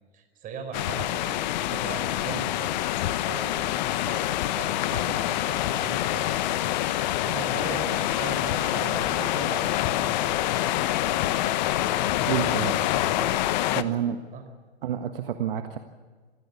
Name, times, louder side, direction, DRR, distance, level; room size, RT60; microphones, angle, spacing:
voice 1, 0.1-2.7 3.2-6.9 7.2-10.3 12.1-14.4, right 5 dB, 25° right, 6 dB, 4.6 m, -40 dB
sound 1, 0.7-13.8, left 14 dB, 40° left, 1.0 m, -26 dB
Squeak, 2.7-9.8, right 5 dB, 70° right, 4.7 m, -49 dB
voice 2, 12.3-12.7 13.7-14.2 14.8-15.8, right 9 dB, 55° right, 7 dB, 1.5 m, -28 dB
26.0 x 16.5 x 7.1 m, 1.5 s
figure-of-eight pair, 115°, 34 cm